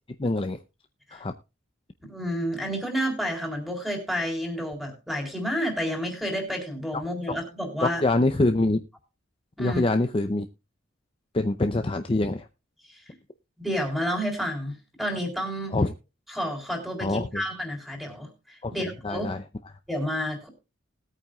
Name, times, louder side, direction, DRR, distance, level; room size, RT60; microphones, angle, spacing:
voice 1, 0.2-0.6 1.1-1.3 7.8-8.8 9.6-10.5 11.3-12.5 15.7-15.9 17.0-17.4 18.6-19.4, left 2 dB, 25° left, 7 dB, 0.6 m, -25 dB
voice 2, 2.0-8.0 9.6-9.8 12.9-13.0 13.6-15.8 16.3-19.3 19.9-20.5, equal, ahead, 1 dB, 3.6 m, -30 dB
20.0 x 8.9 x 2.4 m, 0.28 s
head